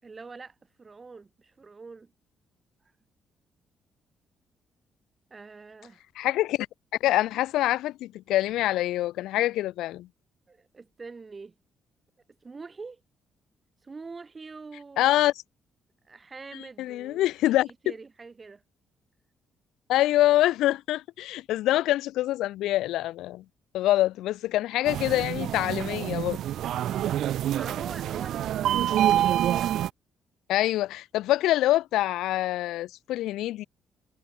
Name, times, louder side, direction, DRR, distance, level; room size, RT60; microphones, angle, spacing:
voice 1, 0.0-2.1 5.3-6.0 10.5-11.5 12.4-13.0 13.8-15.1 16.0-17.6 17.8-18.6 27.5-28.9, right 4 dB, 30° right, 6.5 m, -44 dB
voice 2, 6.1-6.7 7.0-10.1 15.0-15.3 16.8-17.7 19.9-23.4 23.7-26.4 30.5-33.6, left 15 dB, 90° left, 0.9 m, -25 dB
sound 1, 24.8-29.9, right 12 dB, 75° right, 1.5 m, -27 dB
cardioid pair, 90°, 0 cm